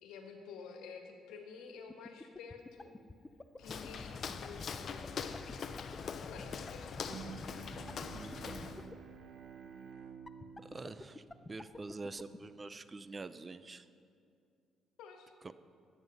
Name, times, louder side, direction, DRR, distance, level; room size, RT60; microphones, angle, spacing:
voice 1, 0.0-3.0 3.6-5.4 6.2-7.2 15.0-15.3, left 5 dB, 85° left, 4 dB, 1.5 m, -50 dB
sound 1, 1.8-8.9 10.3-12.4, left 2 dB, 20° left, 0.7 m, -47 dB
Walk footsteps, 3.6-8.9, left 6 dB, 55° left, 0.7 m, -43 dB
Bowed string instrument, 7.0-12.5, right 6 dB, 70° right, 1.2 m, -51 dB
voice 2, 8.1-8.7 10.6-13.9 15.4-15.5, right 3 dB, 30° right, 13 dB, 0.6 m, -46 dB
14.0 x 9.3 x 5.5 m, 2.4 s
supercardioid pair, 70°, 0 cm